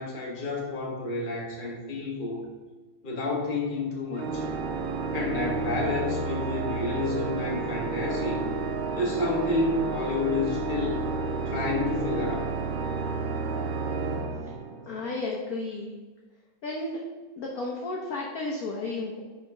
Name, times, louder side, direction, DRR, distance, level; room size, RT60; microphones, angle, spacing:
voice 1, 0.0-2.4 3.0-4.4 5.1-8.4 9.0-11.0 11.4-12.5, left 3 dB, 25° left, -2 dB, 1.4 m, -30 dB
Organ, 4.2-15.1, right 4 dB, 80° right, 1.5 m, -31 dB
voice 2, 14.9-15.9 16.6-17.0 17.4-19.2, left 2 dB, 55° left, -1 dB, 1.2 m, -33 dB
5.8 x 5.0 x 5.4 m, 1.3 s
omnidirectional pair, 2.3 m